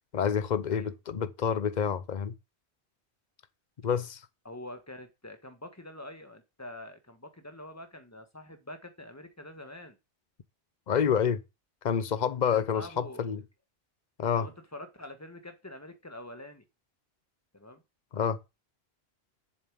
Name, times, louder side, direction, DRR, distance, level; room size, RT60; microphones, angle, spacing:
voice 1, 0.1-2.3 3.8-4.2 10.9-11.4 11.8-13.4 14.2-14.5 18.1-18.4, left 7 dB, 45° left, 0.8 m, -28 dB
voice 2, 4.4-10.0 12.5-13.3 14.4-16.6 17.5-17.8, left 1 dB, 15° left, 1.4 m, -45 dB
7.3 x 7.2 x 6.3 m
omnidirectional pair, 1.1 m